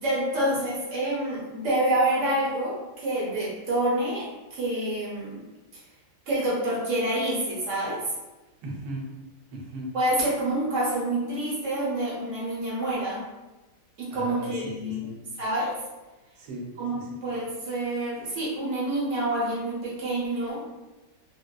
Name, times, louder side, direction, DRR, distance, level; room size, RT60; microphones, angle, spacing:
voice 1, 0.0-5.4 5.7-5.8 6.3-8.1 9.9-13.2 14.0-15.1 15.4-15.8 16.8-20.6, right 1 dB, 55° right, -6 dB, 0.9 m, -27 dB
voice 2, 8.6-9.1 9.5-9.9 14.1-14.5 14.8-15.2 16.4-17.1, right 1 dB, 75° right, -2 dB, 1.3 m, -37 dB
2.9 x 2.1 x 2.2 m, 1.1 s
omnidirectional pair, 1.9 m